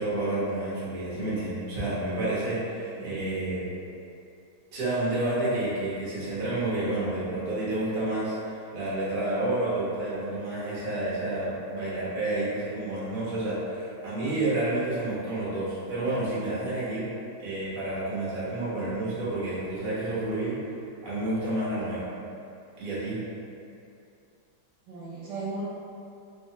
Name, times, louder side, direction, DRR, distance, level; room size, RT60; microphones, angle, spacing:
voice 1, 0.0-3.7 4.7-17.1 17.4-20.6 21.0-22.1 22.8-23.2, right 2 dB, 50° right, -10 dB, 0.6 m, -30 dB
voice 2, 24.8-25.6, right 3 dB, 70° right, -8 dB, 1.1 m, -37 dB
3.2 x 2.2 x 2.8 m, 2.6 s
omnidirectional pair, 2.2 m